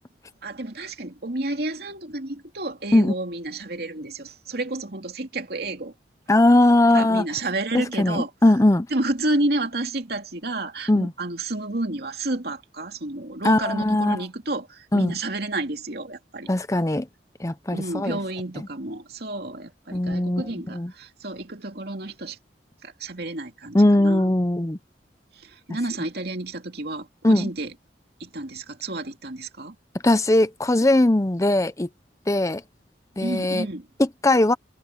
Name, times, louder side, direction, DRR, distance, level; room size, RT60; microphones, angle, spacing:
voice 1, 0.4-5.9 6.9-8.3 8.9-16.5 17.7-22.4 22.8-24.3 25.4-27.7 28.2-29.8 33.2-33.9, right 2 dB, 60° right, 2.7 m, -30 dB
voice 2, 6.3-7.2 7.7-8.9 10.9-11.1 13.4-14.2 14.9-15.1 16.5-17.1 17.4-18.2 18.6-18.7 19.9-20.9 23.7-24.8 27.2-27.5 30.0-31.9 32.3-32.6 33.2-33.7 34.0-34.5, left 1 dB, 20° left, 0.6 m, -20 dB
head